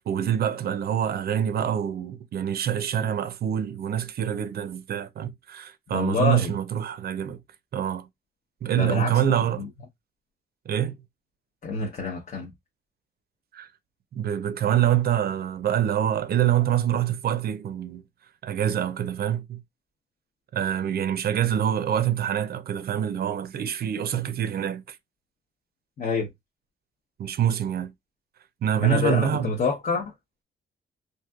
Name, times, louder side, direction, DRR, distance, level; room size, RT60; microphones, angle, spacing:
voice 1, 0.1-7.4 7.7-8.1 8.6-9.6 10.7-11.0 13.5-13.7 14.1-18.0 18.4-19.6 20.5-25.0 27.2-27.9 28.6-29.5, right 10 dB, 50° right, 0.5 m, -25 dB
voice 2, 5.9-6.5 8.8-9.2 9.6-9.7 11.6-12.5 26.0-26.3 28.8-30.1, left 4 dB, 45° left, 0.9 m, -27 dB
3.1 x 2.7 x 2.3 m
cardioid pair, 90°, 20 cm